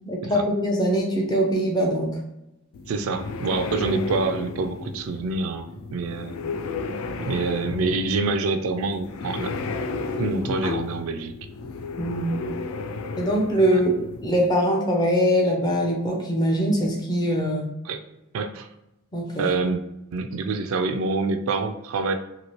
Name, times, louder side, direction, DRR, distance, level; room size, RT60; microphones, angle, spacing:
voice 1, 0.0-2.2 12.0-12.4 13.2-17.7 19.1-19.5, equal, 20° left, 1 dB, 0.5 m, -23 dB
sound 1, 2.7-14.5, left 4 dB, 75° left, 0.3 m, -33 dB
voice 2, 2.9-6.4 7.2-9.5 10.2-11.4 13.7-13.8 17.9-18.0 18.3-18.7 19.4-19.8 20.1-22.1, right 3 dB, 70° right, 8 dB, 0.3 m, -26 dB
2.9 x 2.6 x 2.9 m, 0.89 s
head